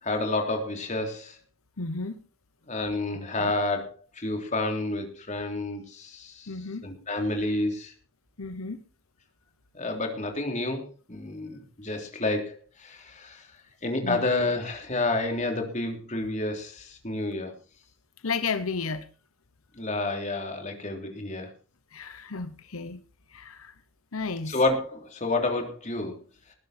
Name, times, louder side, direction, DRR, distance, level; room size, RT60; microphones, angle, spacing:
voice 1, 0.0-1.4 2.7-6.5 6.8-7.9 9.7-13.5 13.8-17.5 19.7-21.5 24.5-26.1, left 2 dB, 35° left, 3.4 m, -29 dB
voice 2, 1.8-2.2 3.4-3.5 6.5-6.9 8.4-8.8 14.0-14.3 18.2-19.1 21.9-23.0 23.3-23.7 24.1-24.6, left 4 dB, 90° left, 1.1 m, -33 dB
20.0 x 10.5 x 4.4 m
head